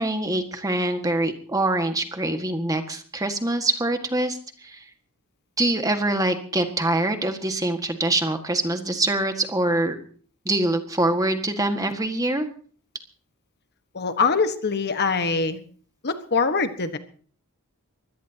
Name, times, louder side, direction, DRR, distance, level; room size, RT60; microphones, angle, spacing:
voice 1, 0.0-4.8 5.6-10.0 10.5-12.5, right 2 dB, 15° right, 6 dB, 1.7 m, -24 dB
voice 2, 13.9-15.6 16.0-17.0, left 4 dB, 50° left, 9 dB, 1.4 m, -23 dB
23.5 x 17.0 x 2.9 m, 0.44 s
head